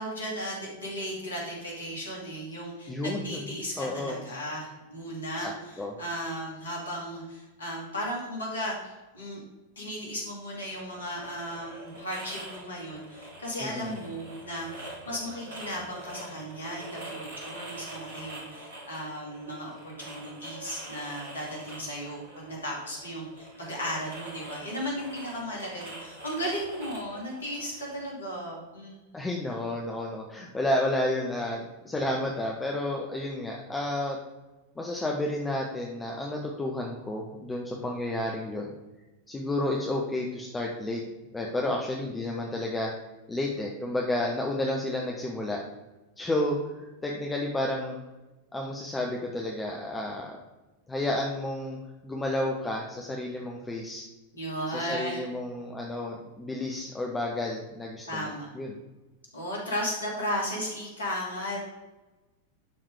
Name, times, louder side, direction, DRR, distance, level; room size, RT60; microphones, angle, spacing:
voice 1, 0.0-5.5 6.0-9.4 9.8-29.3 54.3-55.2 58.1-58.5 59.3-61.6, equal, 70° left, -2 dB, 2.6 m, -35 dB
voice 2, 2.9-3.4 3.8-4.2 5.4-6.0 13.6-14.0 29.1-34.2 34.8-38.7 39.3-41.0 41.3-42.9 43.3-45.6 46.2-48.0 48.5-50.3 50.9-54.0 54.7-58.8, left 1 dB, 10° left, -1 dB, 1.0 m, -31 dB
sound 1, 10.6-28.1, right 2 dB, 60° right, 3.0 m, -45 dB
11.0 x 3.9 x 4.9 m, 1.1 s
figure-of-eight pair, 90°, 0 cm